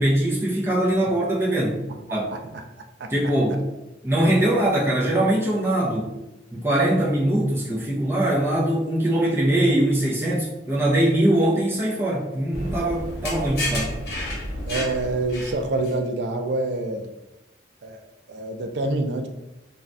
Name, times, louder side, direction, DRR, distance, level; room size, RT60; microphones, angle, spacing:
voice 1, 0.0-1.8 2.1-2.3 3.1-3.7 4.0-6.1 6.5-14.0, right 1 dB, 15° right, -5 dB, 0.6 m, -22 dB
sound 1, 12.5-15.9, left 1 dB, 60° left, 1.0 m, -31 dB
voice 2, 14.7-17.1 17.8-19.3, right 2 dB, 65° right, 5 dB, 0.4 m, -26 dB
2.6 x 2.3 x 3.2 m, 0.94 s
head